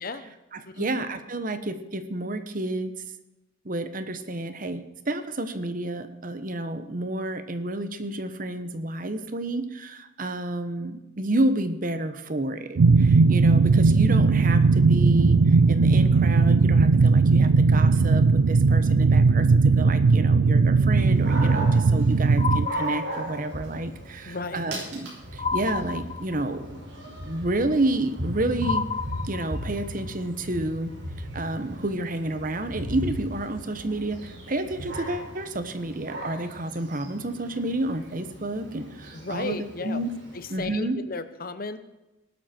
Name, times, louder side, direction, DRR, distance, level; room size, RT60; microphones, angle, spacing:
voice 1, 0.0-0.3 0.7-1.0 24.2-24.7 39.1-40.0 40.3-41.8, left 3 dB, 45° left, 11 dB, 0.9 m, -34 dB
voice 2, 0.5-2.9 3.6-26.7 27.1-28.9 29.2-30.9 31.2-40.1 40.5-41.0, right 1 dB, 40° right, 10 dB, 1.1 m, -30 dB
sound 1, 12.8-22.7, right 4 dB, 85° right, 0.5 m, -18 dB
Dog, 21.0-40.6, right 1 dB, 55° right, 5.6 m, -37 dB
sound 2, 22.4-23.6 25.4-26.6 28.6-29.9, left 5 dB, 25° left, 0.6 m, -31 dB
18.5 x 12.5 x 4.5 m, 1.0 s
head